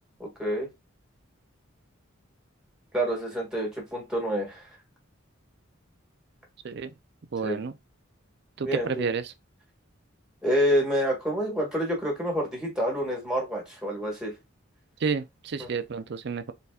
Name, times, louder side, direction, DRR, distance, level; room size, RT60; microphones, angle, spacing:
voice 1, 0.2-0.7 2.9-4.8 7.4-7.6 8.6-9.1 10.4-14.3 15.6-15.7, equal, 5° right, 1.8 m, -28 dB
voice 2, 7.3-7.7 8.6-9.3 15.0-16.5, right 5 dB, 55° right, 0.5 m, -30 dB
4.2 x 4.0 x 2.4 m
head